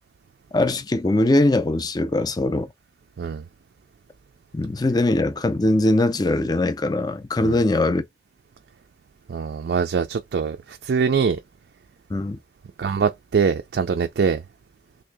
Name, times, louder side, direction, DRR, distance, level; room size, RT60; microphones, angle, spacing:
voice 1, 0.5-2.7 4.5-8.0 12.1-12.4, left 2 dB, 20° left, 0.4 m, -21 dB
voice 2, 9.3-11.4 12.8-14.4, right 5 dB, 65° right, 0.3 m, -23 dB
3.2 x 2.6 x 3.4 m
head